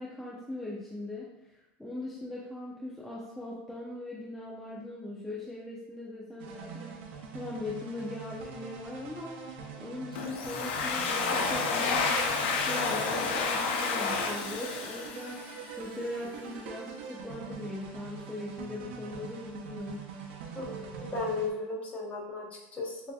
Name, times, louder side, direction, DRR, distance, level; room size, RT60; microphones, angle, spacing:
voice 1, 0.0-7.0 7.3-9.4 9.8-15.4 15.8-20.1, left 2 dB, 5° left, -6 dB, 0.6 m, -40 dB
sound 1, 6.4-21.5, right 6 dB, 75° right, 0.8 m, -44 dB
Domestic sounds home sounds, 10.2-15.8, left 4 dB, 80° left, 0.6 m, -30 dB
voice 2, 20.5-23.1, left 3 dB, 25° left, -2 dB, 1.1 m, -35 dB
6.7 x 2.8 x 2.3 m, 0.96 s
supercardioid pair, 135°, 6 cm